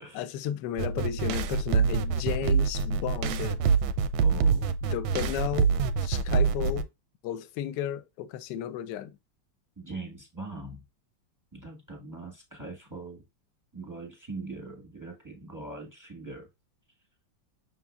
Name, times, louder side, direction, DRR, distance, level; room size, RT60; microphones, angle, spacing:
voice 1, 0.0-3.6 4.8-5.7 6.0-6.9 7.2-9.2, left 11 dB, 75° left, 1.1 m, -33 dB
sound 1, 0.8-6.8, right 5 dB, 90° right, 1.4 m, -26 dB
voice 2, 4.2-4.7 9.8-10.8 11.5-13.2 13.7-16.5, right 3 dB, 10° right, 1.0 m, -41 dB
6.1 x 3.7 x 2.3 m
omnidirectional pair, 2.1 m